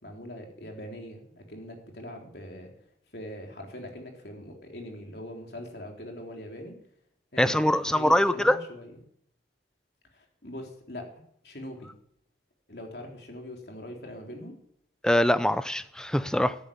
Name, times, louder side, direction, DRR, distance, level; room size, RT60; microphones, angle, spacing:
voice 1, 0.0-2.7 3.1-6.8 7.3-9.0 10.1-11.1 11.4-11.9 12.7-14.5, left 1 dB, 65° left, 3.6 m, -42 dB
voice 2, 7.4-8.6 15.0-16.6, left 1 dB, 5° left, 0.6 m, -23 dB
14.0 x 10.5 x 9.3 m
head